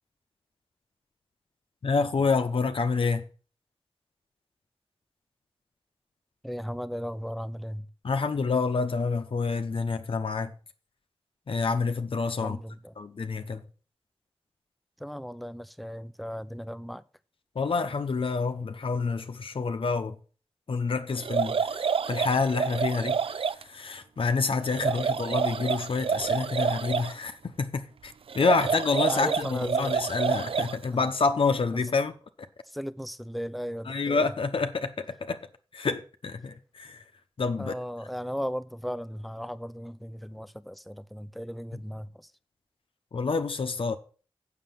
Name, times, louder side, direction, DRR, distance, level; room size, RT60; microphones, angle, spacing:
voice 1, 1.8-3.2 8.0-10.5 11.5-12.6 13.0-13.6 17.6-20.2 20.7-23.2 23.7-32.1 33.9-35.4 35.7-37.0 37.4-37.7 43.1-44.0, left 4 dB, 65° left, 0.8 m, -28 dB
voice 2, 6.4-7.9 12.4-12.9 15.0-17.0 24.8-25.1 29.1-29.9 31.7-31.9 32.7-34.3 37.6-42.3, equal, ahead, 0.6 m, -36 dB
sound 1, 21.2-23.6 24.7-27.1 28.3-30.8, right 6 dB, 70° right, 0.4 m, -28 dB
7.5 x 6.7 x 6.9 m
wide cardioid pair, 75°, 10 cm